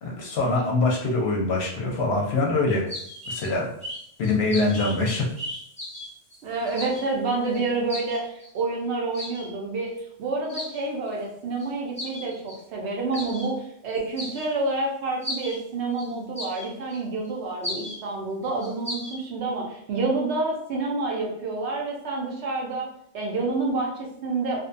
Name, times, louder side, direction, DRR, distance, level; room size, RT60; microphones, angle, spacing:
voice 1, 0.0-2.9 3.3-3.7 4.2-5.2, left 2 dB, 65° left, -1 dB, 0.8 m, -24 dB
sound 1, 2.9-3.5 3.8-6.4 6.6-7.1 7.5-7.6 7.9-8.6 9.1-9.5 10.0-10.1 10.5-10.8 11.6-11.7 12.0-12.6 13.1-13.5 14.0-14.7 15.2-15.6 16.0-16.1 16.4-17.0 17.3-17.4 17.6-18.0 18.4-19.2, left 1 dB, 5° left, 0.8 m, -35 dB
voice 2, 6.4-9.9 10.2-22.9 23.1-24.6, right 3 dB, 65° right, -1 dB, 0.9 m, -28 dB
2.5 x 2.2 x 2.5 m, 0.70 s
omnidirectional pair, 1.3 m